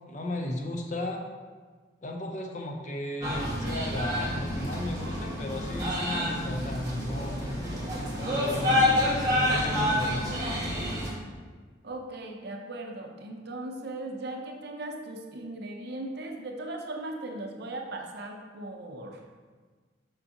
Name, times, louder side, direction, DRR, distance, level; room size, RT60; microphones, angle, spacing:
voice 1, 0.1-1.2 2.0-7.5 8.1-10.3, left 1 dB, 40° left, 2 dB, 0.7 m, -35 dB
sound 1, 3.2-11.1, left 1 dB, 20° right, 1.6 m, -28 dB
voice 2, 11.8-19.2, right 2 dB, 55° right, 2 dB, 0.7 m, -38 dB
6.8 x 5.5 x 2.9 m, 1.5 s
head